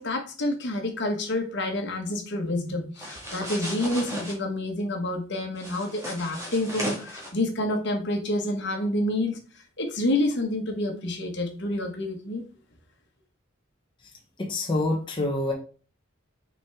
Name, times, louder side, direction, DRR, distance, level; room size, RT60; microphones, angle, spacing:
voice 1, 0.0-9.4 9.8-12.4, left 1 dB, 60° left, 4 dB, 1.4 m, -28 dB
sound 1, 3.0-4.3 5.5-7.3, equal, 15° right, 1.9 m, -36 dB
voice 2, 14.4-15.5, left 2 dB, 25° left, -1 dB, 1.0 m, -26 dB
6.1 x 4.4 x 3.6 m, 0.37 s
head